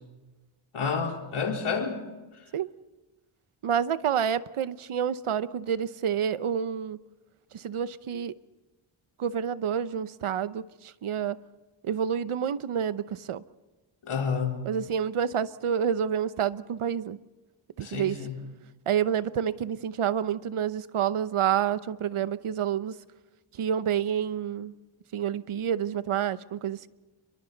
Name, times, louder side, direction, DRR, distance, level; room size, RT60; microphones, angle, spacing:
voice 1, 0.7-2.0 14.0-14.7 17.8-18.4, left 5 dB, 80° left, 0 dB, 4.2 m, -30 dB
voice 2, 3.6-7.0 7.5-8.3 9.2-11.4 11.8-13.4 14.6-17.2 17.8-18.2 18.9-23.0 23.6-24.7 25.1-26.9, right 8 dB, 80° right, 14 dB, 0.9 m, -28 dB
29.5 x 23.0 x 4.0 m, 1.2 s
wide cardioid pair, 120°, 49 cm